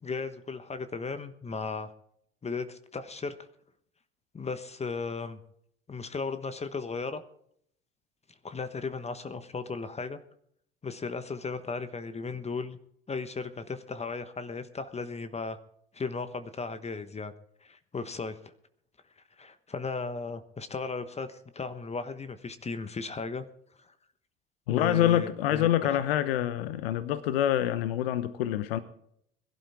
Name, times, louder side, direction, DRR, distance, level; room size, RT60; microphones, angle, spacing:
voice 1, 0.0-1.9 2.4-3.4 4.3-5.4 5.9-7.2 8.4-10.2 10.8-12.8 13.1-15.6 15.9-17.3 17.6-18.4 19.4-23.4 23.8-23.9 24.7-26.0, left 4 dB, 20° left, 1.2 m, -36 dB
voice 2, 24.7-28.8, left 12 dB, 70° left, 1.0 m, -26 dB
22.0 x 12.0 x 3.6 m
hypercardioid pair, 70°, 31 cm